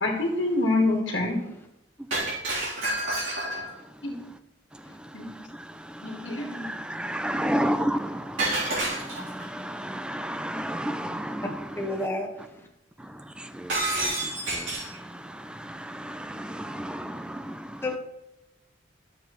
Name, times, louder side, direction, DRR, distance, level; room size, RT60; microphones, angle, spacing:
voice 1, 0.0-1.4 4.0-4.2 5.1-5.2 6.0-6.7, left 2 dB, 75° left, 1.7 m, -26 dB
Shatter, 2.1-3.8 8.4-9.4 13.7-15.0, right 2 dB, 90° right, 3.4 m, -29 dB
voice 2, 5.2-12.1 13.0-17.8, equal, 5° right, 0.4 m, -33 dB
voice 3, 11.8-12.3 12.5-12.6 17.8-18.0, left 2 dB, 10° left, 1.1 m, -29 dB
12.5 x 7.0 x 3.0 m
head